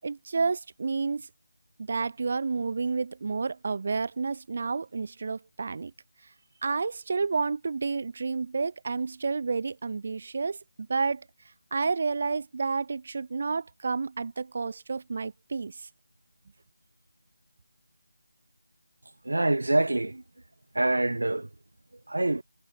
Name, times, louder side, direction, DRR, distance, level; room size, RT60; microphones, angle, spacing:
voice 1, 0.0-1.3 1.8-5.9 6.6-11.3 11.7-15.9, right 4 dB, 30° right, 7.2 m, -30 dB
voice 2, 19.2-20.2 20.7-21.5 22.1-22.4, right 2 dB, 85° right, 3.4 m, -25 dB
figure-of-eight pair, 180°, 0 cm